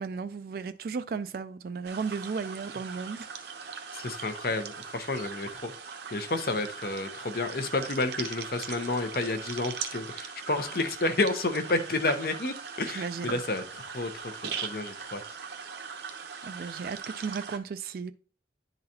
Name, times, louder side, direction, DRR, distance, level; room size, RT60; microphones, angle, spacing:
voice 1, 0.0-3.3 12.9-13.3 16.4-18.1, right 5 dB, 55° right, 0.3 m, -35 dB
sound 1, 1.8-17.6, right 6 dB, 70° right, 0.7 m, -40 dB
voice 2, 3.9-5.7 6.1-15.2, left 2 dB, 55° left, 0.7 m, -30 dB
10.5 x 3.9 x 2.8 m
head